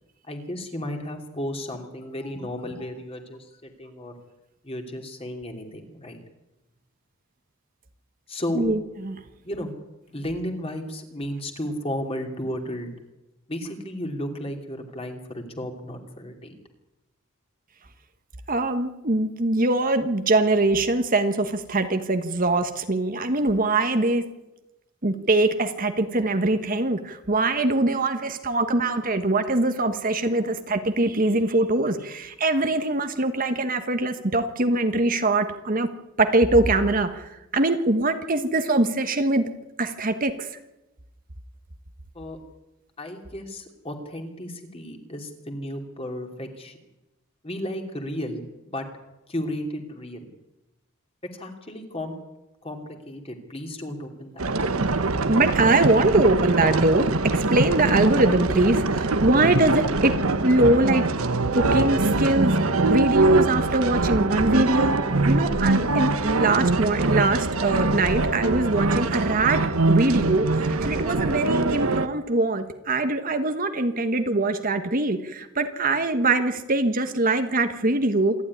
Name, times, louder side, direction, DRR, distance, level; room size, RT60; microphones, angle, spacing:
voice 1, 0.2-4.1 4.6-6.2 8.3-8.6 9.4-9.7 10.1-12.9 13.5-16.6 42.1-42.4 43.0-46.8 47.4-48.9 49.3-50.3 51.3-52.1 52.6-54.8, left 1 dB, 25° left, 3 dB, 2.9 m, -34 dB
voice 2, 8.5-9.2 18.5-24.3 25.0-35.9 36.2-39.5 39.8-40.5 55.3-60.2 60.4-61.0 61.5-65.0 65.3-78.3, right 2 dB, 40° right, 8 dB, 1.3 m, -23 dB
sound 1, 54.4-72.1, right 3 dB, 85° right, 1.3 m, -23 dB
27.0 x 12.0 x 9.8 m, 1.0 s
head